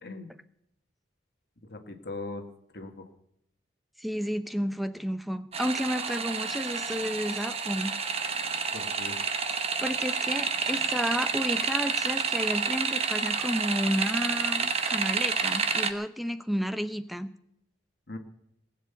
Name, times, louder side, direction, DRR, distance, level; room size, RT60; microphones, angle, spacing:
voice 1, 0.0-0.3 1.7-2.5 2.7-3.1 8.7-9.2 18.1-18.2, left 2 dB, 55° left, 5 dB, 1.6 m, -39 dB
voice 2, 4.0-7.9 9.8-17.3, equal, ahead, 11 dB, 0.6 m, -31 dB
sound 1, 5.5-15.9, right 5 dB, 30° right, 1.1 m, -29 dB
20.0 x 7.6 x 8.1 m, 0.76 s
head